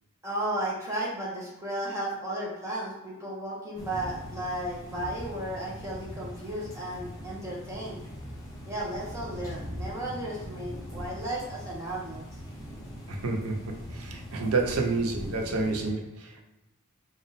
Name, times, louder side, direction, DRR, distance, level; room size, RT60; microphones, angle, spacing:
voice 1, 0.2-8.0 8.7-12.3, right 1 dB, 15° right, -6 dB, 1.0 m, -34 dB
sound 1, 3.7-15.9, equal, 15° left, 0.9 m, -41 dB
voice 2, 13.1-13.6 13.9-16.5, right 3 dB, 80° right, 1 dB, 0.7 m, -29 dB
3.5 x 2.5 x 4.0 m, 0.97 s
head